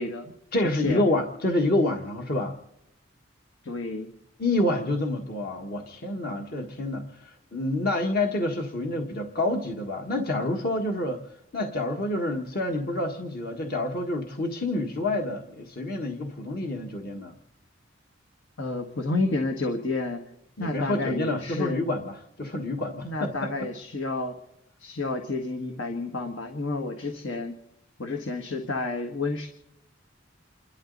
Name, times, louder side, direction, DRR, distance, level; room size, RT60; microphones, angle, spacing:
voice 1, 0.0-0.3 0.8-1.0 3.6-4.1 18.6-20.2 20.6-21.8 23.0-24.3 24.8-27.6 28.0-29.5, left 2 dB, 80° left, 3 dB, 1.6 m, -30 dB
voice 2, 0.5-2.6 4.4-17.4 20.6-23.5, left 1 dB, 55° left, 2 dB, 1.5 m, -28 dB
29.0 x 12.5 x 4.0 m, 0.83 s
head